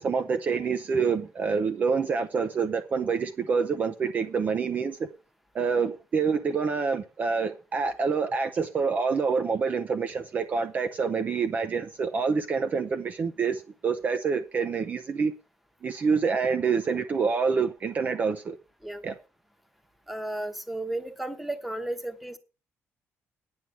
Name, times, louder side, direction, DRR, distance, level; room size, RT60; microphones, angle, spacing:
voice 1, 0.0-5.1 5.5-15.3 15.8-18.6 19.0-19.1, right 5 dB, 30° right, 0.7 m, -27 dB
voice 2, 20.1-22.4, right 1 dB, ahead, 1.1 m, -33 dB
9.7 x 6.1 x 8.4 m
cardioid pair, 175°, 5 cm